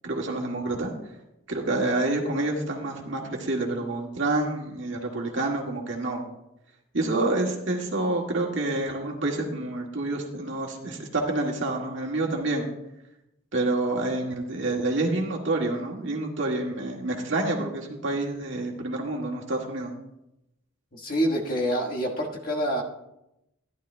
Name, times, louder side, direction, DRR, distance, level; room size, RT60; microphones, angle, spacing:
voice 1, 0.0-0.9 1.5-6.2 6.9-12.7 13.5-19.9, right 2 dB, 65° right, -1 dB, 1.8 m, -28 dB
voice 2, 20.9-22.8, equal, 45° left, -1 dB, 1.5 m, -26 dB
14.0 x 11.0 x 2.2 m, 0.86 s
head